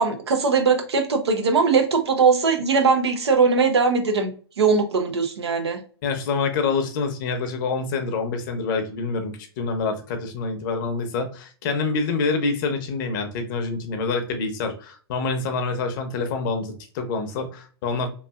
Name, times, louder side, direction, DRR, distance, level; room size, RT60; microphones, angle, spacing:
voice 1, 0.0-4.3 4.6-5.8, right 5 dB, 85° right, 0.7 m, -20 dB
voice 2, 6.0-18.1, left 4 dB, 50° left, 0.7 m, -26 dB
3.2 x 2.4 x 2.3 m
hypercardioid pair, 120°, 13 cm